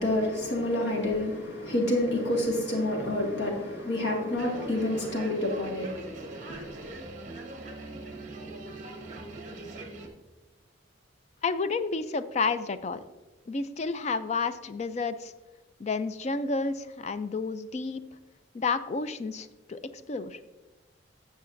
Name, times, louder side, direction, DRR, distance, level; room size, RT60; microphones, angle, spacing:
voice 1, 0.0-6.9, left 1 dB, 60° left, 1.9 m, -29 dB
sound 1, 4.4-10.1, right 2 dB, 40° right, 1.0 m, -42 dB
voice 2, 11.4-13.0 13.5-15.3 15.8-18.0 18.5-20.4, left 4 dB, 35° left, 0.3 m, -31 dB
12.5 x 7.3 x 2.6 m
head